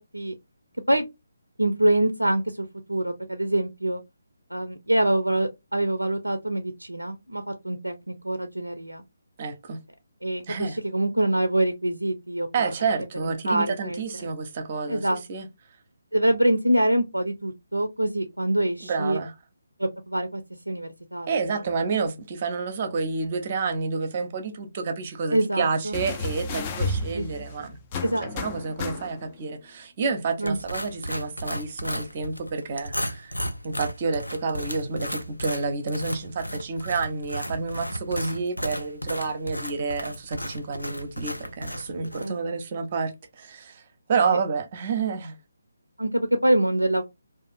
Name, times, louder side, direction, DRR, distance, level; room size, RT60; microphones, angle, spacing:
voice 1, 1.6-4.0 4.5-9.0 10.2-14.3 14.9-15.2 16.1-19.2 19.8-21.7 25.3-25.9 27.1-27.2 27.6-27.7 28.0-28.3 30.4-30.6 42.1-42.3 46.0-47.0, right 1 dB, 90° right, 0.4 m, -25 dB
voice 2, 9.4-9.8 10.5-10.8 12.5-15.5 18.8-19.3 21.3-27.8 28.3-33.3 33.6-43.8 44.1-45.4, right 4 dB, 35° right, 0.6 m, -29 dB
sound 1, 25.9-29.4 30.6-30.7, left 2 dB, 25° left, 0.3 m, -32 dB
sound 2, 30.4-42.3, equal, 90° left, 0.5 m, -34 dB
2.5 x 2.4 x 2.3 m
figure-of-eight pair, 145°, 0 cm